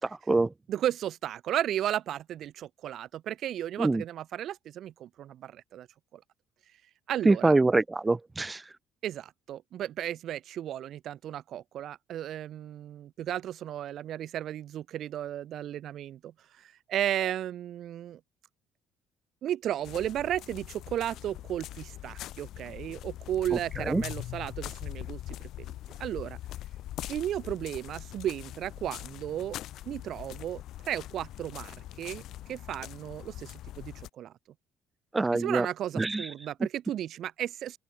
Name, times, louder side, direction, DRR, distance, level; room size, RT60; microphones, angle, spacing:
voice 1, 0.0-0.5 3.8-4.0 7.2-8.7 23.8-24.0 35.1-35.7 36.0-36.3, right 3 dB, 15° right, 2.4 m, -25 dB
voice 2, 0.7-5.9 6.1-6.2 7.1-7.5 9.0-18.2 19.4-25.7 26.0-26.4 27.1-29.6 29.9-32.2 32.5-34.3 35.3-37.8, right 11 dB, 60° right, 7.3 m, -34 dB
sound 1, 19.8-34.1, left 13 dB, 70° left, 6.5 m, -42 dB
open air
cardioid pair, 105°, 0 cm